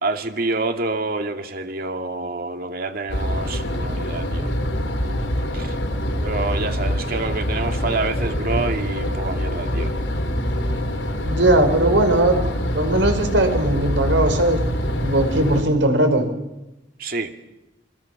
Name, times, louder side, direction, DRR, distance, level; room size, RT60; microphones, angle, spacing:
voice 1, 0.0-4.5 5.5-5.8 6.2-9.9 17.0-17.3, right 3 dB, 50° right, 6 dB, 2.5 m, -27 dB
sound 1, 3.1-15.6, equal, 75° left, 4.4 m, -25 dB
voice 2, 11.2-12.4 12.7-14.6 15.0-16.2, right 1 dB, 75° right, 6 dB, 5.4 m, -18 dB
27.5 x 25.5 x 7.3 m, 0.97 s
head